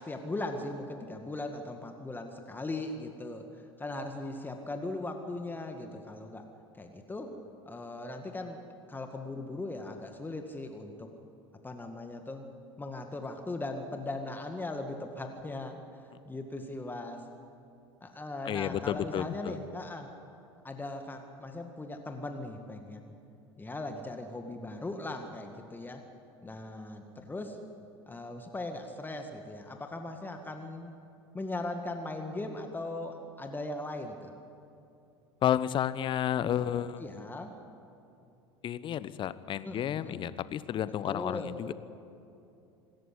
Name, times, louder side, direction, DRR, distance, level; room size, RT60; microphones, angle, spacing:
voice 1, 0.0-6.4 6.8-7.3 7.7-8.6 8.9-11.1 11.6-12.5 12.8-15.8 16.3-17.2 18.0-20.1 20.6-23.1 23.6-26.0 26.4-27.6 28.1-30.9 31.3-34.3 37.0-37.5 39.6-40.3 41.1-41.5, left 2 dB, 15° left, 5 dB, 1.9 m, -39 dB
voice 2, 18.4-19.6 35.4-37.0 38.6-41.7, left 10 dB, 35° left, 16 dB, 1.0 m, -31 dB
26.5 x 14.0 x 9.9 m, 2.7 s
figure-of-eight pair, 75°, 14 cm